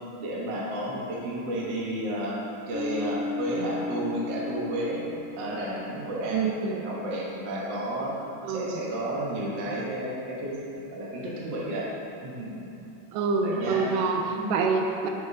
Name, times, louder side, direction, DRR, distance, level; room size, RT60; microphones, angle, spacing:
voice 1, 0.2-2.4 2.7-5.0 5.3-8.1 8.5-11.9 12.2-12.7 13.4-13.9 14.3-14.6, right 1 dB, 65° right, -5 dB, 1.1 m, -32 dB
Bass guitar, 2.7-6.2, left 2 dB, 70° left, 1.9 m, -35 dB
voice 2, 6.3-6.8 8.4-8.8 13.1-14.2 14.5-15.1, right 4 dB, 80° right, 3 dB, 2.1 m, -26 dB
11.0 x 4.8 x 2.8 m, 2.8 s
omnidirectional pair, 3.8 m